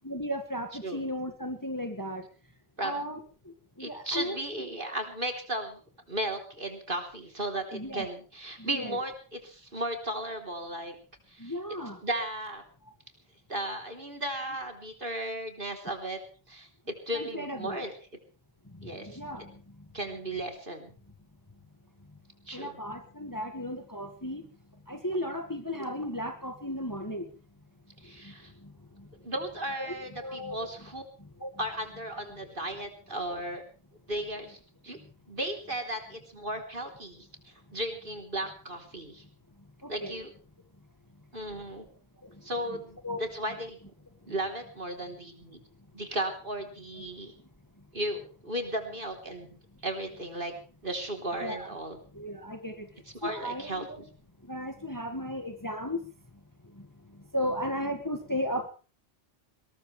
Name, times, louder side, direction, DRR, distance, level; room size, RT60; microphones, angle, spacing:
voice 1, 0.1-2.2 2.8-3.2 3.8-4.4 7.7-8.1 8.6-9.0 11.4-12.0 17.1-17.8 19.0-19.5 22.5-24.4 24.9-27.3 29.8-30.6 31.4-31.5 39.8-40.2 43.0-43.2 51.4-51.7 52.1-52.9 53.2-54.0 54.5-56.0 57.3-58.7, equal, 15° left, 6 dB, 1.9 m, -35 dB
voice 2, 3.8-5.8 6.1-11.0 11.3-11.5 12.0-12.6 13.5-16.2 16.5-17.9 18.8-19.2 19.9-20.9 22.5-22.8 28.0-28.5 29.2-31.0 31.6-33.6 34.1-34.6 34.8-35.0 35.3-39.2 39.9-40.3 41.3-41.9 42.4-43.8 44.2-45.6 45.9-47.3 47.9-49.6 49.8-50.5 50.8-52.0 53.1-54.1, right 1 dB, 45° right, 5 dB, 3.7 m, -35 dB
21.5 x 19.5 x 3.4 m, 0.36 s
omnidirectional pair, 1.3 m